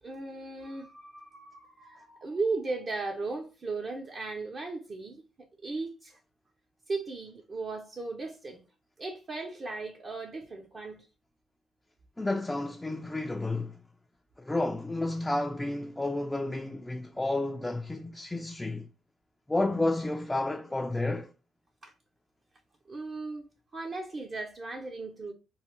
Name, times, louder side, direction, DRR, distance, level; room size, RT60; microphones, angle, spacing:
voice 1, 0.0-6.2 6.9-8.6 9.0-11.0 21.8-21.9 22.9-25.3, right 3 dB, 40° right, 0.5 m, -37 dB
voice 2, 12.2-13.8 14.4-18.9 19.5-21.3, left 2 dB, 10° left, 0.3 m, -31 dB
3.1 x 2.0 x 2.8 m
cardioid pair, 90°, 0 cm